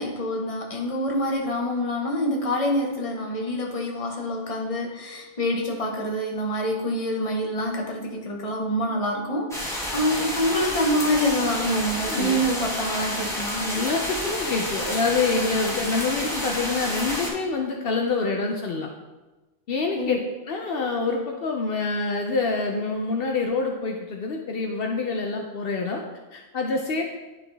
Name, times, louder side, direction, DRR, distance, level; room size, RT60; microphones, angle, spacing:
voice 1, 0.0-13.7 20.0-20.2, equal, 35° left, 0 dB, 1.0 m, -26 dB
sound 1, 9.5-17.3, equal, 5° left, 1.5 m, -30 dB
voice 2, 12.1-12.4 13.6-18.9 19.7-20.2 20.5-26.0 26.3-27.0, left 4 dB, 65° left, 2 dB, 0.8 m, -26 dB
10.5 x 3.8 x 3.4 m, 1.2 s
omnidirectional pair, 1.1 m